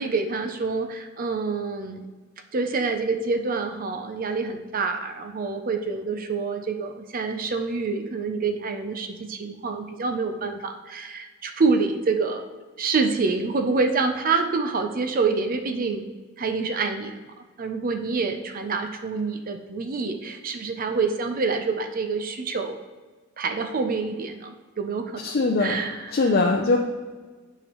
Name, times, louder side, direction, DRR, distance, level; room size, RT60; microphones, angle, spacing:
voice 1, 0.0-2.0 2.5-12.4 12.8-16.0 16.4-22.8 23.4-26.4, right 4 dB, 45° right, 6 dB, 0.5 m, -27 dB
voice 2, 25.2-25.8 26.1-26.8, left 3 dB, 50° left, 1 dB, 0.5 m, -21 dB
8.6 x 4.9 x 3.0 m, 1.3 s
head